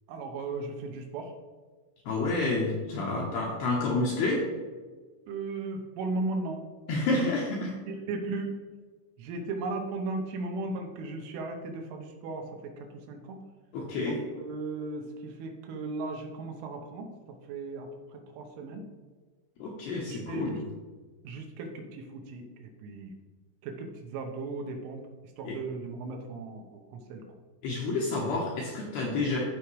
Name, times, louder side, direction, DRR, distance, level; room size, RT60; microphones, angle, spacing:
voice 1, 0.1-1.3 3.1-3.3 5.3-6.6 6.9-7.3 7.6-8.5 9.2-13.4 14.0-17.1 17.5-18.9 20.0-20.6 21.2-23.1 23.6-25.0 25.4-27.2, right 3 dB, 80° right, 3 dB, 3.3 m, -36 dB
voice 2, 2.1-4.5 6.9-7.7 13.7-14.2 19.6-20.6 25.4-25.6 27.6-29.4, left 3 dB, 75° left, -2 dB, 2.4 m, -29 dB
14.5 x 5.0 x 3.2 m, 1.4 s
omnidirectional pair, 5.9 m